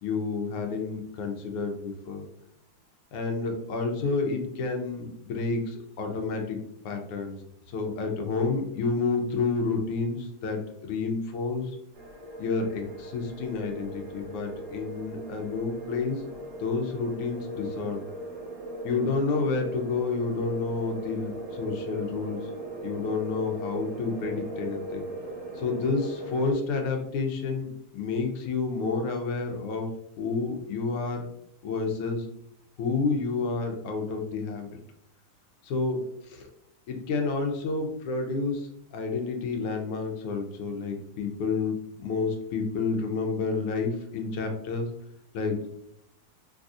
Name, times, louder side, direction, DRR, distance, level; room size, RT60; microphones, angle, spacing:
voice 1, 0.0-2.3 3.1-7.4 7.7-11.8 12.4-16.2 16.6-18.0 18.8-22.4 22.8-25.0 25.6-29.9 30.2-31.2 31.6-32.3 32.8-34.7 35.6-36.5 36.9-44.9 45.3-45.6, left 4 dB, 85° left, 3 dB, 1.6 m, -30 dB
sound 1, 11.9-26.5, right 1 dB, 65° right, 1.3 m, -39 dB
3.9 x 2.6 x 2.4 m, 0.75 s
omnidirectional pair, 2.4 m